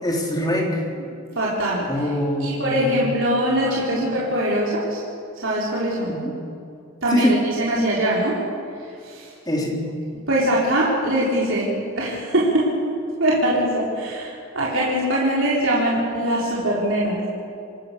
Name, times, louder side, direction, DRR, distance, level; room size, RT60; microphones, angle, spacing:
voice 1, 0.0-0.9 1.9-3.0 3.6-4.1 6.1-6.4 7.1-7.4 9.5-9.8, equal, 20° left, 0 dB, 3.7 m, -24 dB
voice 2, 1.4-1.9 2.4-5.0 5.4-6.1 7.0-8.4 9.1-9.2 10.3-12.7 13.2-17.2, right 1 dB, 60° right, -6 dB, 4.4 m, -22 dB
27.0 x 18.0 x 7.0 m, 2.5 s
head